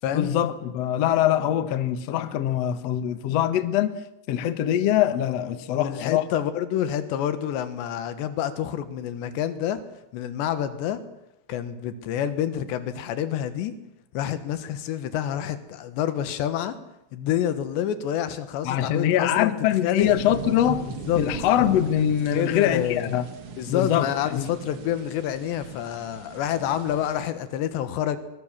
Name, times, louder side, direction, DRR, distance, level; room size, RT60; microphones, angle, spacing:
voice 1, 0.1-3.9 4.3-6.2 18.6-20.9 21.1-23.3 23.7-24.5, left 11 dB, 65° left, 1.6 m, -23 dB
voice 2, 5.8-9.8 10.1-11.0 11.5-13.7 14.1-16.8 17.1-19.5 19.8-20.1 21.1-21.2 22.3-23.1 23.6-28.2, left 10 dB, 85° left, 3.7 m, -28 dB
sound 1, 20.0-27.3, right 5 dB, 55° right, 1.6 m, -38 dB
22.5 x 21.5 x 7.4 m
omnidirectional pair, 4.9 m